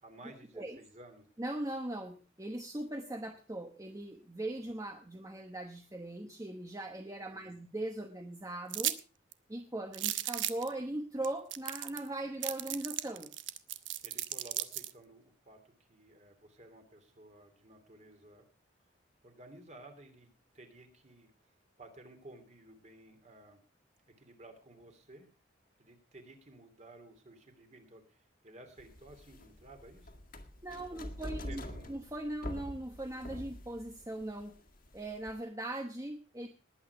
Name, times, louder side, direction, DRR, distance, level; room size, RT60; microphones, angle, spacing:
voice 1, 0.0-1.3 7.3-7.6 14.0-18.5 19.2-20.3 20.5-21.5 21.8-23.6 24.2-25.3 25.8-30.2 30.9-31.9, right 2 dB, 35° right, 6 dB, 3.1 m, -55 dB
voice 2, 1.4-9.0 9.5-13.3 30.6-31.6 31.9-34.6 34.9-36.5, right 1 dB, 15° right, 5 dB, 1.0 m, -40 dB
sound 1, 8.7-9.0 9.3-9.4 9.9-10.7 11.2-11.3 11.5-12.1 12.4-14.9, right 13 dB, 80° right, 1.0 m, -35 dB
sound 2, 28.8-35.4, left 1 dB, 50° left, 1.8 m, -45 dB
20.0 x 8.8 x 4.8 m, 0.36 s
head